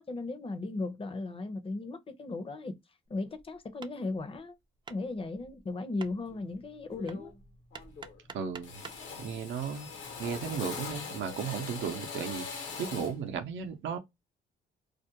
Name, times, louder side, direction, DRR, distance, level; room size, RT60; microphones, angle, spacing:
voice 1, 0.0-2.8 3.1-4.5 4.9-7.3, left 3 dB, 30° left, 0.6 m, -36 dB
Hammer, 3.1-9.1, right 5 dB, 25° right, 0.4 m, -51 dB
Drill, 6.3-6.5 6.9-7.5 7.7-8.3 8.6-13.2, left 5 dB, 80° left, 0.9 m, -42 dB
voice 2, 8.3-8.8 9.2-9.9 10.2-14.0, right 7 dB, 75° right, 0.6 m, -35 dB
2.4 x 2.1 x 2.7 m
cardioid pair, 90°, 20 cm